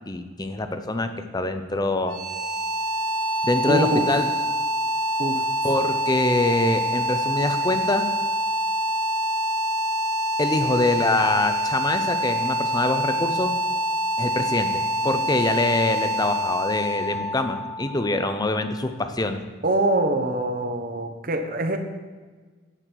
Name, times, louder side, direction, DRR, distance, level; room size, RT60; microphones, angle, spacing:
voice 1, 0.0-2.2 3.4-4.3 5.6-8.0 10.4-13.5 14.2-19.4, left 2 dB, 20° left, 9 dB, 0.6 m, -24 dB
sound 1, 1.9-18.9, equal, 75° right, 1.9 m, -26 dB
voice 2, 3.7-4.1 5.2-5.5 19.6-21.8, right 1 dB, 45° right, 6 dB, 1.0 m, -24 dB
9.9 x 8.5 x 4.6 m, 1.4 s
head